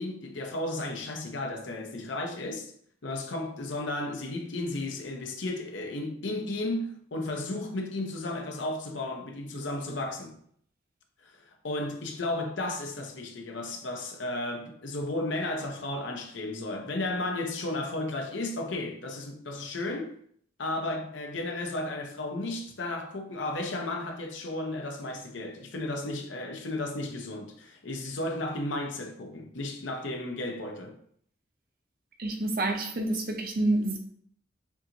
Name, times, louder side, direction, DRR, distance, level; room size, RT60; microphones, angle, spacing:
voice 1, 0.0-2.7 3.0-10.4 11.2-20.1 20.6-31.0, left 2 dB, 80° left, 0.8 m, -34 dB
voice 2, 32.2-34.0, right 2 dB, 50° right, 0.8 m, -28 dB
7.1 x 2.6 x 2.8 m
head